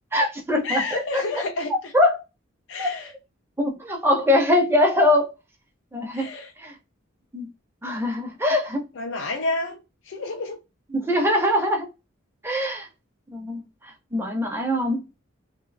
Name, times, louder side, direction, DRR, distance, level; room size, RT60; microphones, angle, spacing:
voice 1, 0.1-1.2 1.9-2.2 2.8-2.9 3.6-5.3 5.9-6.3 6.6-6.7 7.3-7.5 7.8-8.9 10.9-11.9 12.4-12.9 13.3-13.6 14.1-15.0, left 1 dB, 10° right, 0.5 m, -22 dB
voice 2, 0.6-1.9 2.7-3.1 6.1-6.5 9.0-9.8 10.1-10.6, left 2 dB, 65° left, 0.4 m, -29 dB
2.6 x 2.0 x 2.5 m
head